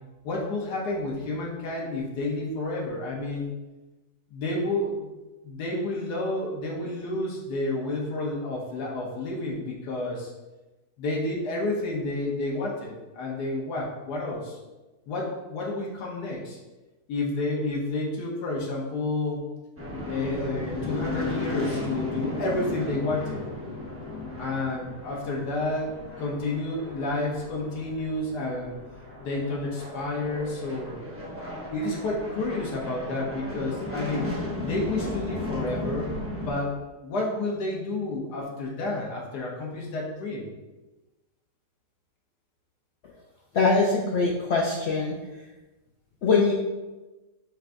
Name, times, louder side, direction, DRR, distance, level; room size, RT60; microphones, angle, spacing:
voice 1, 0.2-3.5 4.3-5.1 5.4-10.3 11.0-14.6 15.1-16.6 17.1-19.4 20.1-23.4 24.4-28.7 29.2-31.0 31.7-34.3 34.6-36.1 36.4-36.8 37.0-40.5, left 2 dB, 90° left, -2 dB, 1.4 m, -30 dB
sound 1, 19.8-36.5, left 2 dB, 15° right, 0.5 m, -35 dB
voice 2, 43.5-45.5 46.2-46.5, left 4 dB, 70° left, -2 dB, 0.6 m, -23 dB
6.2 x 3.4 x 2.5 m, 1.1 s
omnidirectional pair, 1.7 m